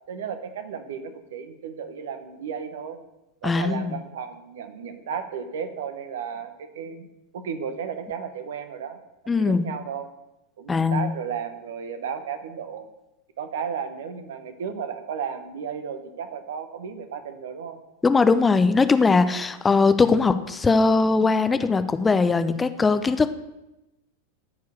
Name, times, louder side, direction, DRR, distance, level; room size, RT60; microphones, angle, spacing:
voice 1, 0.1-3.0 3.4-7.1 7.3-9.0 9.4-10.1 10.6-12.9 13.4-17.8, right 7 dB, 60° right, 9 dB, 1.2 m, -34 dB
voice 2, 3.4-4.0 9.3-9.7 10.7-11.1 18.0-23.3, left 4 dB, 15° left, 11 dB, 0.7 m, -20 dB
14.0 x 4.8 x 7.0 m, 0.96 s
figure-of-eight pair, 90°, 0 cm